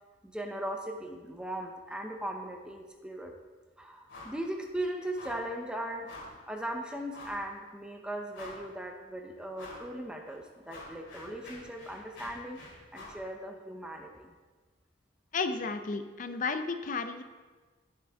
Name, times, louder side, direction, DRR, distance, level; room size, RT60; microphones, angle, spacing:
voice 1, 0.2-3.3 3.8-6.1 6.5-12.6 12.9-14.3, right 1 dB, 5° right, 3 dB, 0.6 m, -38 dB
sound 1, 4.1-4.4 4.7-4.8 5.1-5.5 6.1-6.4 7.1-7.5 7.9-8.0 8.3-8.8 9.5-9.9 10.3-13.2, left 2 dB, 65° left, 2.7 m, -48 dB
voice 2, 15.3-17.2, left 4 dB, 40° left, 8 dB, 0.5 m, -33 dB
8.3 x 7.8 x 3.4 m, 1.4 s
head